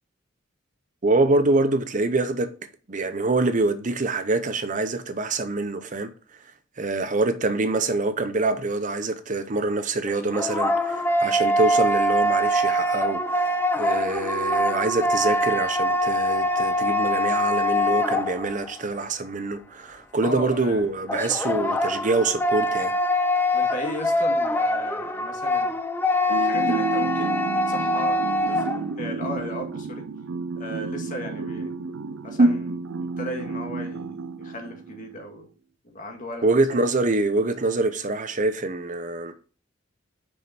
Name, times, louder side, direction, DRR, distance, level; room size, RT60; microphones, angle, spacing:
voice 1, 1.0-2.5 2.9-6.1 6.8-22.9 26.6-26.8 32.4-32.5 36.4-39.3, right 2 dB, 40° right, 0.7 m, -25 dB
sound 1, 10.1-18.8 21.1-28.8, left 1 dB, 10° left, 0.5 m, -24 dB
voice 2, 20.2-20.9 21.5-21.7 23.5-25.8 26.2-30.1 30.6-32.0 32.2-32.6 33.2-35.5 35.8-36.8, equal, 40° left, 1.9 m, -36 dB
sound 2, 26.3-35.1, right 5 dB, 80° right, 0.5 m, -31 dB
6.3 x 6.1 x 4.3 m
head